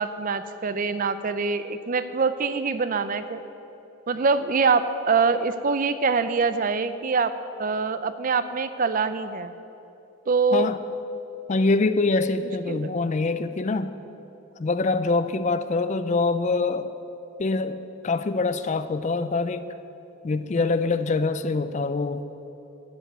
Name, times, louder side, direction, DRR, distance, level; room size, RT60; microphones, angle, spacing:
voice 1, 0.0-3.4 4.1-9.5 10.3-10.7 12.7-12.9, right 4 dB, 40° right, 12 dB, 0.4 m, -24 dB
voice 2, 11.5-14.0 14.6-16.9 17.4-19.7 20.2-22.2, left 3 dB, 35° left, 12 dB, 0.4 m, -24 dB
13.5 x 5.4 x 9.0 m, 2.9 s
head